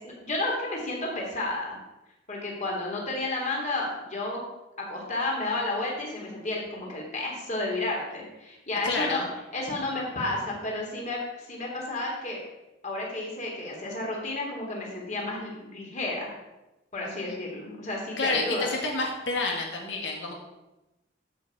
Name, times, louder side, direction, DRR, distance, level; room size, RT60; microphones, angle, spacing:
voice 1, 0.0-1.8 2.3-4.4 4.8-9.3 9.5-12.4 12.8-16.3 16.9-18.7, left 2 dB, 40° left, -2 dB, 3.1 m, -31 dB
voice 2, 8.8-9.3 17.1-17.4 18.2-20.3, left 3 dB, 75° left, 0 dB, 1.9 m, -29 dB
12.5 x 6.4 x 4.8 m, 0.99 s
head